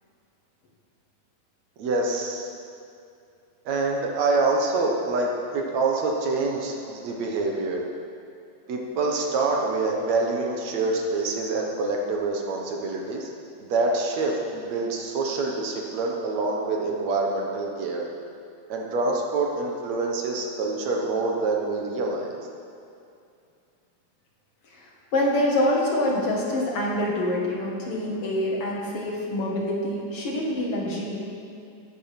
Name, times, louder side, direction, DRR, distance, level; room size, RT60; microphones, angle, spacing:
voice 1, 1.8-2.5 3.7-7.8 8.7-13.3 13.6-18.0 18.7-22.4, right 3 dB, 65° right, 0 dB, 2.5 m, -26 dB
voice 2, 25.1-31.2, left 1 dB, 50° left, -3 dB, 2.8 m, -26 dB
14.0 x 8.9 x 6.0 m, 2.5 s
omnidirectional pair, 3.5 m